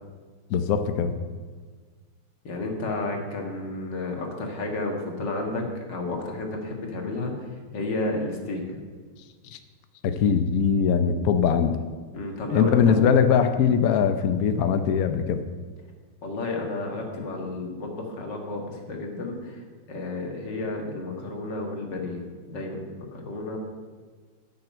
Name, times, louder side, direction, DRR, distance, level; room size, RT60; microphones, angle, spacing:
voice 1, 0.5-1.1 9.5-9.6 10.0-11.7 12.5-15.4, left 7 dB, 70° left, 8 dB, 0.8 m, -21 dB
voice 2, 2.4-7.3 7.7-8.8 12.1-13.0 16.2-23.6, left 2 dB, 55° left, 2 dB, 2.3 m, -31 dB
10.0 x 6.7 x 8.6 m, 1.5 s
omnidirectional pair, 2.4 m